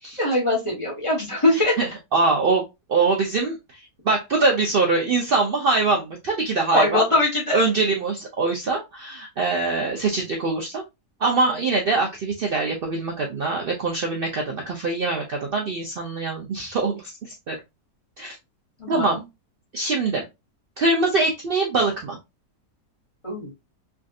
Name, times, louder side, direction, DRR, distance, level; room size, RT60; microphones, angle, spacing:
voice 1, 0.2-1.7 6.7-7.6 18.8-19.1 23.2-23.5, left 1 dB, 25° left, -4 dB, 0.9 m, -21 dB
voice 2, 1.5-2.6 2.9-7.0 7.5-10.8 11.2-17.6 18.2-18.4 18.9-19.2 19.7-20.2 20.8-22.2, right 3 dB, 80° right, 1 dB, 0.5 m, -23 dB
3.5 x 2.6 x 2.3 m, 0.23 s
omnidirectional pair, 1.7 m